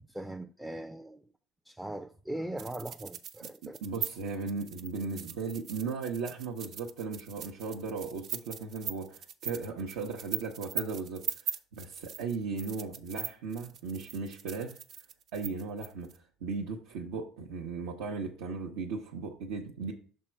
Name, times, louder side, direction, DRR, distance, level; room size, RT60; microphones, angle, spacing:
voice 1, 0.1-1.2 1.7-3.8, right 1 dB, 5° right, 0.4 m, -40 dB
sound 1, 2.6-16.2, right 8 dB, 55° right, 0.6 m, -40 dB
voice 2, 3.8-14.8 15.3-16.1 16.4-19.9, right 4 dB, 85° right, 0.8 m, -37 dB
6.3 x 3.6 x 4.5 m
supercardioid pair, 100°, 0 cm